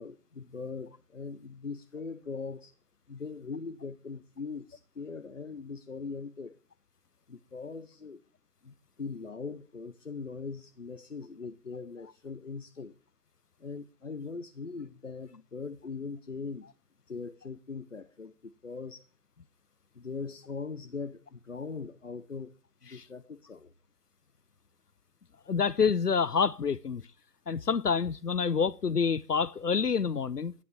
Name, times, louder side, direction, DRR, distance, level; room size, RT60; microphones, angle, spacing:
voice 1, 0.0-2.7 3.1-6.6 7.3-8.2 8.6-12.9 13.6-16.7 17.1-19.1 19.9-22.5 22.8-23.7, left 4 dB, 50° left, 1.0 m, -40 dB
voice 2, 25.5-27.0 27.5-30.5, left 6 dB, 70° left, 0.8 m, -27 dB
12.0 x 11.0 x 7.2 m
figure-of-eight pair, 160°, 48 cm